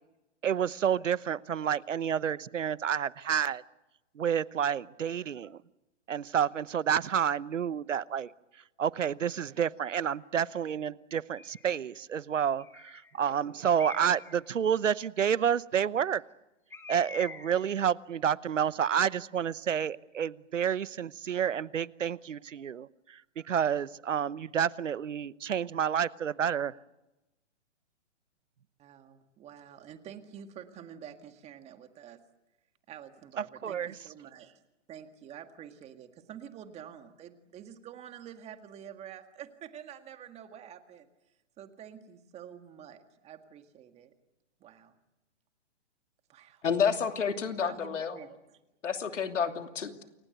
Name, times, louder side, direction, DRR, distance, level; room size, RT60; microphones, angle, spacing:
voice 1, 0.4-3.6 4.1-5.6 6.1-8.3 8.8-16.2 16.9-26.8 33.4-33.9, right 8 dB, 85° right, 19 dB, 1.0 m, -29 dB
Bird, 11.4-11.8 12.6-13.1 13.8-14.4 16.7-17.7, left 4 dB, 5° left, 1.6 m, -45 dB
voice 2, 28.8-32.2 32.9-34.6 34.9-41.1 41.6-44.1 44.6-44.9 46.3-46.6 47.6-48.6, right 9 dB, 15° right, 8 dB, 1.9 m, -48 dB
voice 3, 46.6-48.2 48.8-50.0, left 6 dB, 80° left, 6 dB, 3.0 m, -30 dB
29.0 x 23.5 x 8.0 m, 0.98 s
hypercardioid pair, 145°, 36 cm